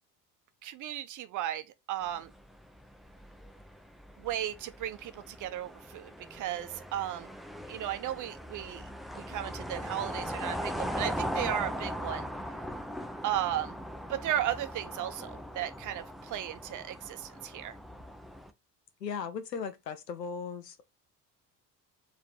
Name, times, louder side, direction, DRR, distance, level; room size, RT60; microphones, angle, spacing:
voice 1, 0.6-2.3 4.2-7.3 7.7-12.3 13.2-13.8 14.1-17.7, right 12 dB, 40° right, 0.7 m, -35 dB
sound 1, 2.1-18.5, equal, ahead, 0.4 m, -39 dB
voice 2, 19.0-20.8, left 6 dB, 85° left, 0.7 m, -37 dB
4.5 x 3.0 x 3.5 m
figure-of-eight pair, 55°, 48 cm